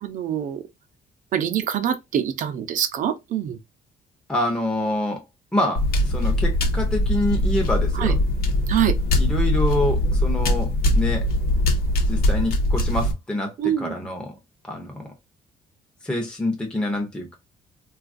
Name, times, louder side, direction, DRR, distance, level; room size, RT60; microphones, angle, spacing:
voice 1, 0.0-0.6 1.3-3.6 8.0-8.1 8.7-9.0 13.6-13.9, right 9 dB, 60° right, 0.6 m, -24 dB
voice 2, 4.3-5.2 5.5-8.2 9.1-11.3 12.1-14.4 14.7-15.1 16.0-17.3, left 1 dB, 5° left, 0.7 m, -26 dB
sound 1, 5.8-13.1, left 1 dB, 80° left, 0.9 m, -21 dB
3.8 x 2.4 x 2.5 m
cardioid pair, 160°, 15 cm